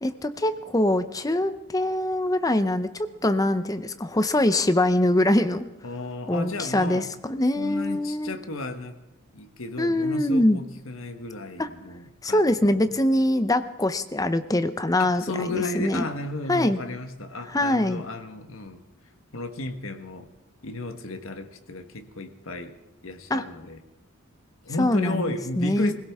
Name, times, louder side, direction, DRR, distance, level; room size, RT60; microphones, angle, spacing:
voice 1, 0.0-5.7 6.3-8.3 9.8-10.6 11.6-11.7 12.2-16.1 16.5-16.8 17.5-18.0 23.3-23.4 24.8-25.9, left 1 dB, 15° left, 11 dB, 0.6 m, -23 dB
voice 2, 5.8-7.1 7.6-8.9 9.3-12.8 15.0-18.8 19.3-20.3 20.6-22.8 23.0-23.8 24.6-25.9, left 2 dB, 75° left, 7 dB, 1.3 m, -34 dB
21.0 x 16.5 x 3.6 m, 1.0 s
head